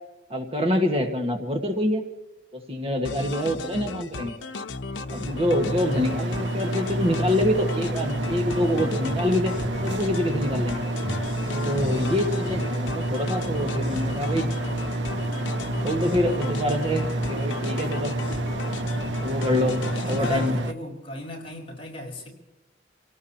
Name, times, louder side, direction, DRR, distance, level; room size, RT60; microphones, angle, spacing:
voice 1, 0.3-2.0 2.5-4.3 5.1-9.6 9.8-10.8 11.5-14.5 15.8-18.1 19.2-20.6, left 1 dB, 30° right, 3 dB, 1.6 m, -26 dB
sound 1, 3.0-20.5, left 4 dB, 85° left, 0.8 m, -36 dB
sound 2, 5.1-20.7, right 1 dB, 70° right, 0.9 m, -29 dB
sound 3, 8.7-10.2 10.5-13.1, left 1 dB, 50° left, 7.4 m, -39 dB
voice 2, 19.9-22.3, equal, 30° left, -1 dB, 5.3 m, -35 dB
27.0 x 18.0 x 2.9 m, 1.0 s
head